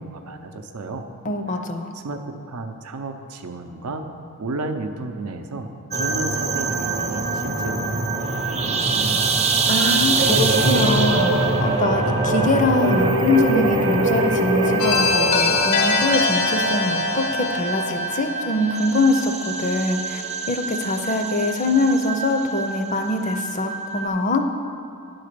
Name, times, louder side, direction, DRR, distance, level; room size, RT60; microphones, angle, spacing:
voice 1, 0.0-1.1 1.9-4.1 4.4-7.9 8.2-9.4, right 3 dB, 85° right, 6 dB, 0.6 m, -33 dB
voice 2, 1.2-1.9 9.7-20.2 20.5-24.5, left 2 dB, 35° left, 6 dB, 0.5 m, -23 dB
sound 1, 5.9-24.1, right 3 dB, 30° right, 0.4 m, -25 dB
sound 2, 10.2-15.6, right 1 dB, 55° right, 0.8 m, -23 dB
sound 3, 14.8-19.6, left 4 dB, 85° left, 1.0 m, -23 dB
9.9 x 4.0 x 6.7 m, 2.5 s
head